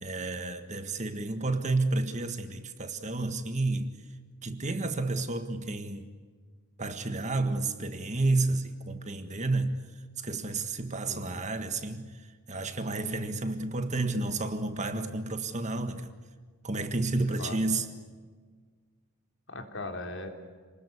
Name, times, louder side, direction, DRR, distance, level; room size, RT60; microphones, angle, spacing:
voice 1, 0.0-3.9 4.4-6.1 6.8-9.8 10.2-12.2 12.5-16.1 16.6-17.8, right 2 dB, 30° right, 1.6 m, -31 dB
voice 2, 11.1-11.5 17.1-17.8 19.5-20.3, left 2 dB, 55° left, 3.7 m, -40 dB
29.0 x 20.5 x 8.5 m
head